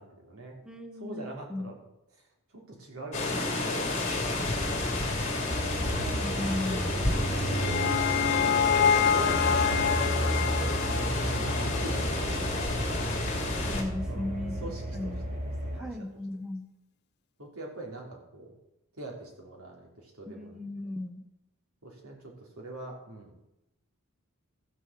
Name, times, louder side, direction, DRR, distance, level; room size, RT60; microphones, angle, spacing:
voice 1, 0.0-0.6 1.0-1.8 2.5-4.2 4.4-4.7 5.3-5.7 8.4-8.7 9.0-13.3 14.1-14.3 14.6-15.1 15.6-15.9 17.4-18.6 19.0-20.8 21.8-23.4, right 2 dB, 80° right, 0 dB, 3.5 m, -44 dB
voice 2, 0.6-1.7 6.0-7.0 13.6-15.2 15.7-16.7 20.3-21.2, left 2 dB, 5° right, 6 dB, 0.9 m, -36 dB
sound 1, 3.1-13.8, left 2 dB, 35° left, 2.9 m, -31 dB
sound 2, 5.5-15.8, equal, 35° right, 2.8 m, -33 dB
sound 3, 7.2-12.4, left 7 dB, 50° left, 0.5 m, -27 dB
14.0 x 7.0 x 7.5 m, 0.90 s
head